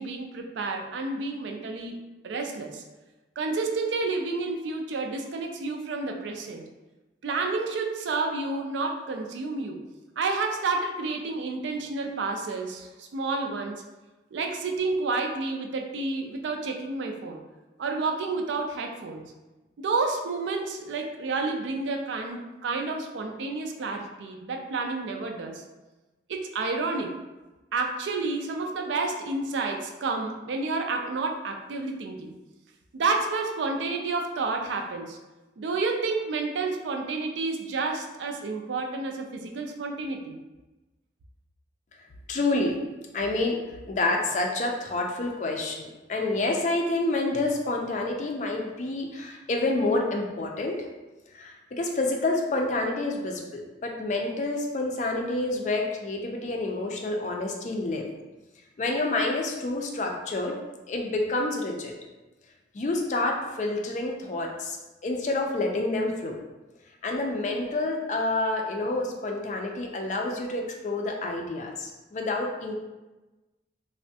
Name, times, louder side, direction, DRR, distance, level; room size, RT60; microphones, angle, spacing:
voice 1, 0.0-2.0 2.2-2.8 3.4-6.6 7.2-9.8 10.2-13.8 14.3-17.4 17.8-19.2 19.8-25.6 26.3-27.2 27.7-32.3 32.9-35.2 35.6-40.4, right 3 dB, 85° right, 3 dB, 0.4 m, -30 dB
voice 2, 42.3-42.8 43.1-43.6 43.9-50.9 51.3-58.1 58.8-60.6 60.9-61.9 62.7-64.8 65.0-66.4 67.0-72.7, left 2 dB, 40° left, 1 dB, 0.3 m, -28 dB
3.3 x 2.1 x 2.6 m, 1.1 s
head